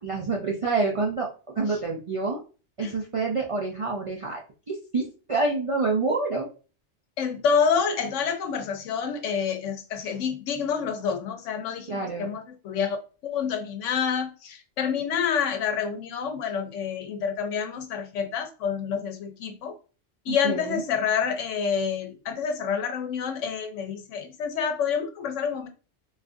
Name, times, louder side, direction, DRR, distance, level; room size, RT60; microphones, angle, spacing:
voice 1, 0.0-2.4 2.8-4.4 4.7-6.5 11.9-12.3 20.3-20.8, right 3 dB, 60° right, 0.3 m, -27 dB
voice 2, 7.2-13.0 13.2-19.8 20.3-25.7, left 6 dB, 80° left, 1.0 m, -28 dB
3.9 x 2.4 x 2.4 m
omnidirectional pair, 1.2 m